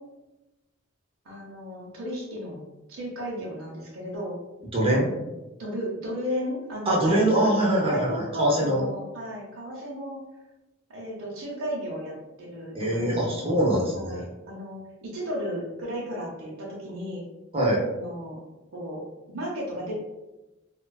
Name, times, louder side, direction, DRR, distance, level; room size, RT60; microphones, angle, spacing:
voice 1, 1.2-2.6 2.9-4.4 5.6-7.5 7.9-10.2 10.9-13.6 13.9-17.2 17.9-18.4 18.7-19.0 19.3-19.9, equal, 90° right, -4 dB, 0.7 m, -34 dB
voice 2, 4.7-5.1 6.9-8.8 12.7-14.2 17.5-17.8, right 1 dB, 30° right, -4 dB, 0.6 m, -23 dB
2.4 x 2.2 x 2.3 m, 1.0 s
head